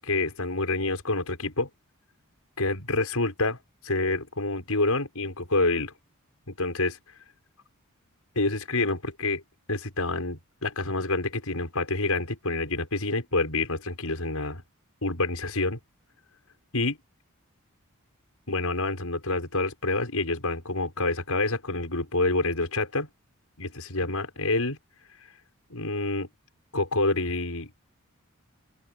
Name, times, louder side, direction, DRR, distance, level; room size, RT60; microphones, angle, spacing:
voice 1, 0.0-1.7 2.6-5.9 6.5-7.0 8.3-9.4 9.7-14.6 15.0-15.8 16.7-17.0 18.5-23.1 23.6-24.8 25.7-26.3 26.7-27.7, left 2 dB, 80° left, 6.4 m, -27 dB
open air
head